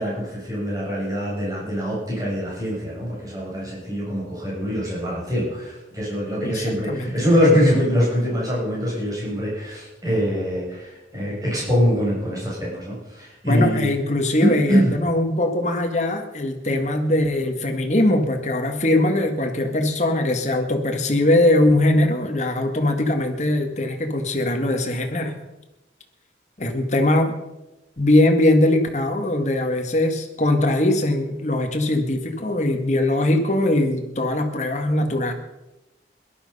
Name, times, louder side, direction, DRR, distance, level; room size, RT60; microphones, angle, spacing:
voice 1, 0.0-13.9 14.4-14.9, equal, 20° right, -6 dB, 7.4 m, -23 dB
voice 2, 6.4-7.1 13.5-25.3 26.6-27.3 28.0-35.3, left 1 dB, 40° left, 4 dB, 1.8 m, -21 dB
17.5 x 12.0 x 5.5 m, 0.96 s
head